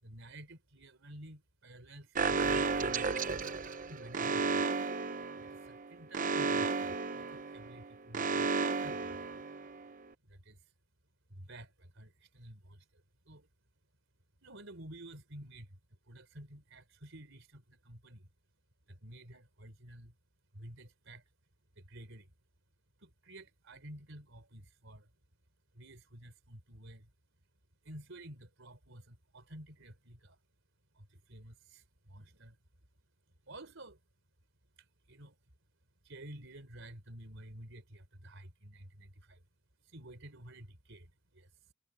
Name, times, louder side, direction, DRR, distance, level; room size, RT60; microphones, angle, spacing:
voice 1, 0.0-3.3 3.8-4.7 5.4-9.3 10.2-10.7 11.3-13.5 14.4-18.3 18.9-20.2 20.5-21.3 21.7-22.3 23.0-25.1 25.7-27.1 27.8-30.4 30.9-32.6 33.4-34.0 34.8-35.4 36.0-39.4 39.8-41.7, right 1 dB, 60° right, 4.7 m, -52 dB
Alarm, 2.1-9.9, right 4 dB, 40° right, 0.8 m, -33 dB
head